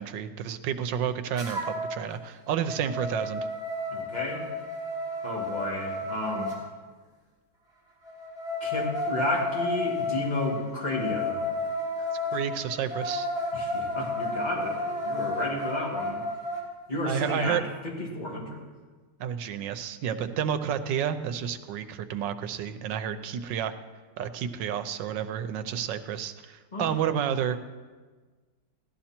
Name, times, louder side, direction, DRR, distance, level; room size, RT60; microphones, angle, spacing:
voice 1, 0.0-3.5 12.3-13.3 17.0-17.6 19.2-23.7 24.2-27.6, right 9 dB, 80° right, 10 dB, 1.4 m, -30 dB
sound 1, 1.4-2.0 2.4-6.6 8.0-16.6, left 2 dB, ahead, 3.0 m, -32 dB
voice 2, 3.9-4.5 5.2-6.5 8.6-11.5 12.0-12.1 13.5-16.2 16.9-18.7 26.7-26.9, left 1 dB, 25° left, -2 dB, 2.4 m, -32 dB
16.0 x 12.5 x 4.4 m, 1.4 s
omnidirectional pair, 2.0 m